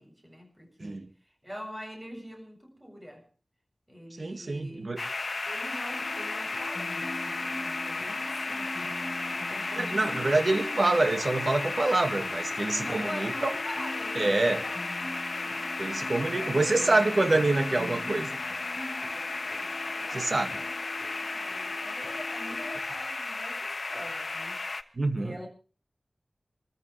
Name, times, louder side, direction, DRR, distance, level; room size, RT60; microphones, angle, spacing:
voice 1, 0.0-3.3 3.9-4.9 5.4-9.0 9.3-10.8 12.8-15.7 16.2-17.2 18.8-24.6 25.2-25.5, equal, 15° right, 7.6 m, -45 dB
voice 2, 4.2-5.0 9.8-13.5 14.2-14.6 15.8-18.3 20.1-20.5 25.0-25.3, right 2 dB, 60° right, 2.0 m, -26 dB
sound 1, 5.0-24.8, left 3 dB, 70° left, 1.2 m, -34 dB
sound 2, 5.9-22.8, left 1 dB, 5° left, 4.8 m, -43 dB
28.0 x 14.5 x 3.3 m
wide cardioid pair, 70°, 0 cm